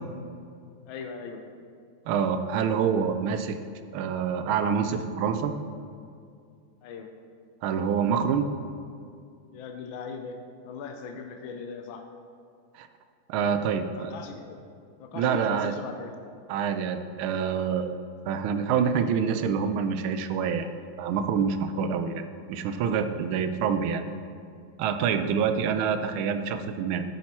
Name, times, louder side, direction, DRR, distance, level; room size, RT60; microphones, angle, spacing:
voice 1, 0.9-1.4 6.8-7.1 9.5-10.4 10.6-12.0 13.5-14.6 15.0-16.1 21.8-22.1, left 5 dB, 75° left, 5 dB, 1.4 m, -39 dB
voice 2, 2.1-3.6 3.9-5.5 7.6-8.5 12.7-12.9 13.3-14.1 15.1-15.7 16.5-17.9 18.3-20.7 21.0-22.2 22.5-24.0 24.8-27.0, right 7 dB, 85° right, 9 dB, 1.5 m, -26 dB
10.5 x 6.6 x 4.2 m, 2.4 s
omnidirectional pair, 2.2 m